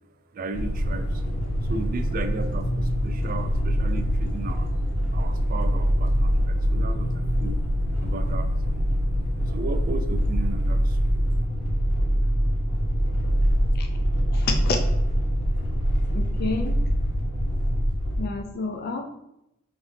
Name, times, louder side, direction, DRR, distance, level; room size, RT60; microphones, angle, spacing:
voice 1, 0.3-1.2 1.6-4.7 5.1-7.6 8.0-8.5 9.4-11.1, right 3 dB, 40° right, 9 dB, 0.4 m, -35 dB
sound 1, 0.5-18.2, equal, 75° left, 0.8 m, -24 dB
voice 2, 14.3-14.8 16.1-16.8 18.2-19.0, left 3 dB, 50° left, 3 dB, 0.5 m, -29 dB
4.9 x 2.7 x 3.3 m, 0.86 s
head